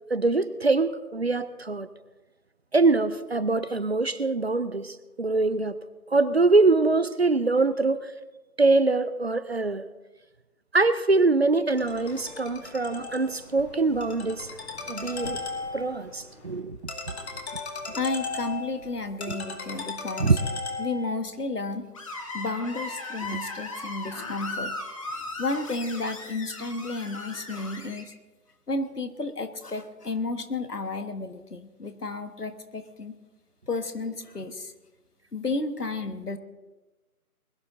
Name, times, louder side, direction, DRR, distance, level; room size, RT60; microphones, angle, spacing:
voice 1, 0.1-1.9 2.7-5.8 6.1-8.1 8.6-9.9 10.7-14.5 14.9-15.4 15.7-16.8 19.3-19.4 20.2-20.4, right 3 dB, 45° right, 14 dB, 0.6 m, -23 dB
Ringtone, 11.7-21.2, left 3 dB, 45° left, 2.3 m, -37 dB
voice 2, 17.2-17.6 17.9-20.3 20.8-21.8 22.3-24.7 25.4-28.1 28.7-33.2 33.7-34.7 35.3-36.4, left 3 dB, 80° left, 8 dB, 1.6 m, -32 dB
Screech, 21.9-28.0, left 2 dB, 20° left, 1.4 m, -37 dB
21.5 x 11.0 x 3.8 m, 1.2 s
figure-of-eight pair, 155°, 45 cm